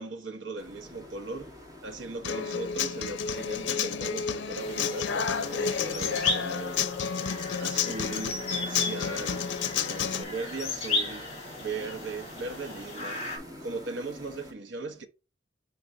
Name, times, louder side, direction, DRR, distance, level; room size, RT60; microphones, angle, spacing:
voice 1, 0.0-9.5 9.8-13.3 13.6-15.1, right 3 dB, 65° right, 1.1 m, -38 dB
sound 1, 0.6-14.5, equal, 20° right, 1.8 m, -48 dB
Human voice / Acoustic guitar, 2.2-10.2, left 6 dB, 60° left, 0.6 m, -31 dB
sound 2, 4.6-13.4, left 3 dB, 30° left, 2.9 m, -35 dB
5.3 x 4.2 x 4.5 m
head